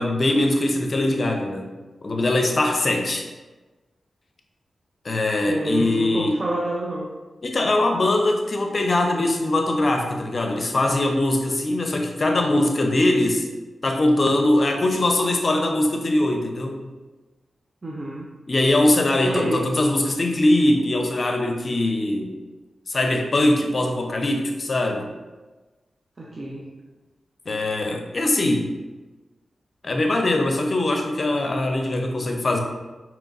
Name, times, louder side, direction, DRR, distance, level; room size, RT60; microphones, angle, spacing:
voice 1, 0.0-1.7 2.0-3.2 5.0-6.4 7.4-13.5 13.8-16.9 18.5-22.4 22.9-25.1 27.5-28.7 29.8-32.6, left 1 dB, 50° left, 3 dB, 0.5 m, -21 dB
voice 2, 5.5-7.0 17.8-18.3 19.2-19.7 26.2-26.7, right 1 dB, 45° right, -3 dB, 0.6 m, -28 dB
5.0 x 2.9 x 2.5 m, 1.2 s
cardioid pair, 45°, 0 cm